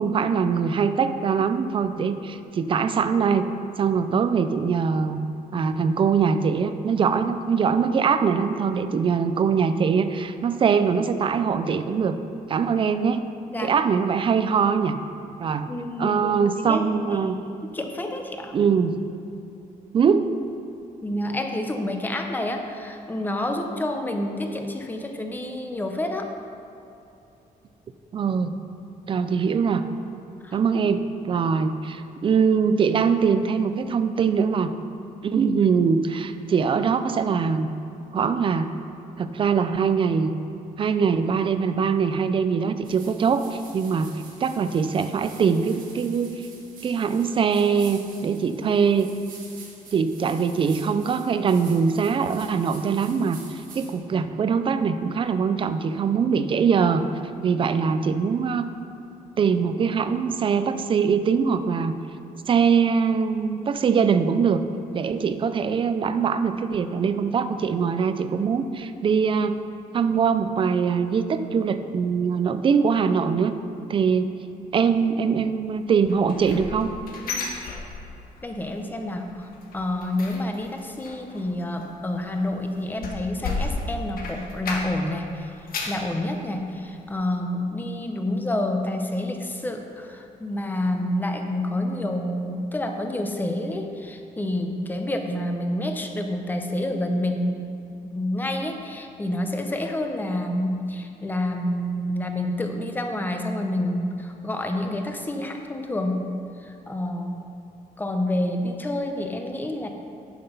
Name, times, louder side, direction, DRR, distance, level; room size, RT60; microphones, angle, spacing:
voice 1, 0.0-3.5 3.8-5.2 5.5-12.2 12.5-13.2 13.6-15.0 15.4-15.7 16.0-17.4 18.5-19.0 19.9-20.3 28.1-28.5 29.1-29.9 30.5-34.7 35.2-37.7 38.1-38.7 39.2-40.3 40.8-44.1 44.4-46.3 46.8-49.1 49.9-57.1 57.4-58.6 59.4-61.9 62.5-64.6 64.9-69.6 69.9-73.6 73.9-74.3 74.7-76.9, right 6 dB, 35° right, 10 dB, 0.4 m, -22 dB
voice 2, 15.7-17.3 17.6-18.6 21.0-26.3 30.4-30.6 31.2-31.5 77.2-77.5 78.4-79.5 79.7-97.6 98.0-106.3 106.6-107.4 108.0-109.9, left 1 dB, 10° left, 4 dB, 0.7 m, -28 dB
sound 1, 42.8-54.0, right 4 dB, 70° right, 1.7 m, -47 dB
sound 2, 76.1-78.4 78.7-79.1 79.4-85.2 85.5-86.1 86.6-86.7 87.1-87.2, left 3 dB, 75° left, 1.4 m, -33 dB
10.5 x 6.0 x 5.4 m, 2.8 s
wide cardioid pair, 175°, 15 cm